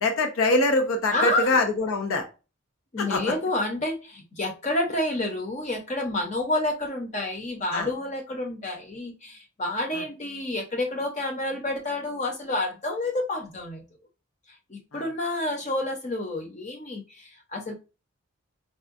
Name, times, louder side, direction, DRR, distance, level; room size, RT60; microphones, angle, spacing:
voice 1, 0.0-2.2 3.0-3.3 7.7-7.9 14.9-15.0, left 2 dB, 80° left, 6 dB, 0.6 m, -24 dB
voice 2, 1.1-1.6 2.9-13.8 14.7-17.7, left 1 dB, 35° left, 3 dB, 0.7 m, -29 dB
3.6 x 2.2 x 2.5 m, 0.31 s
head